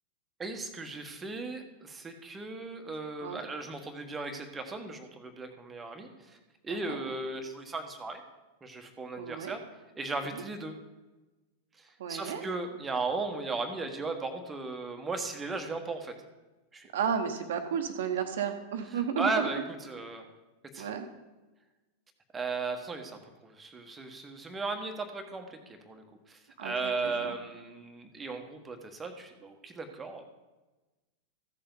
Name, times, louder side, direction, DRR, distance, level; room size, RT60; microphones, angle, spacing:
voice 1, 0.4-6.4 6.6-8.2 8.6-9.6 10.0-10.7 11.8-16.1 16.7-16.9 19.2-20.2 20.7-20.9 22.3-25.6 25.8-30.2, right 3 dB, 15° right, 5 dB, 1.4 m, -36 dB
voice 2, 9.2-9.6 10.3-10.4 12.0-12.4 16.9-19.5 20.8-21.1 26.6-27.4, right 7 dB, 60° right, 7 dB, 1.1 m, -33 dB
15.0 x 6.8 x 3.9 m, 1.1 s
figure-of-eight pair, 90°, 0 cm